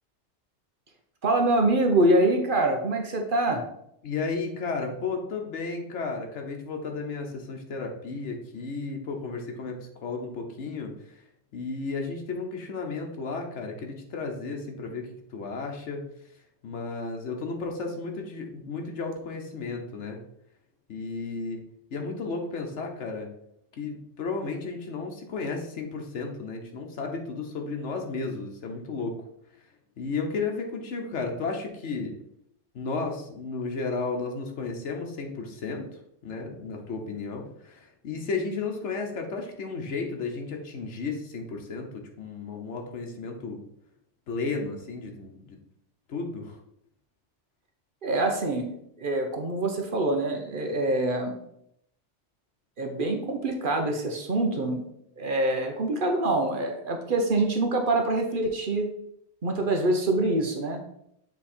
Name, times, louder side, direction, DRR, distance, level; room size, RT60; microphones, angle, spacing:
voice 1, 1.2-3.6 48.0-51.4 52.8-54.8 55.2-58.9 59.4-60.8, right 2 dB, 50° right, 4 dB, 0.9 m, -25 dB
voice 2, 4.0-11.2 11.5-16.0 16.6-20.2 20.9-21.6 21.9-23.3 23.8-29.2 30.0-32.1 32.7-43.7 44.3-45.6 46.1-46.6, left 4 dB, 80° left, 2 dB, 1.2 m, -33 dB
7.4 x 3.3 x 4.3 m, 0.76 s
omnidirectional pair, 1.2 m